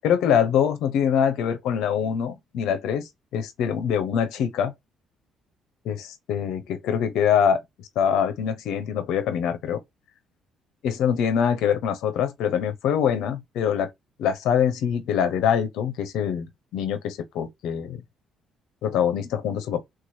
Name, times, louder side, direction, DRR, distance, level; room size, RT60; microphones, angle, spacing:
voice 1, 0.0-4.7 5.8-9.8 10.8-13.9 14.2-16.5 16.7-18.0 18.8-19.8, left 8 dB, 75° left, 0.7 m, -24 dB
3.0 x 2.4 x 3.9 m
supercardioid pair, 70°, 0 cm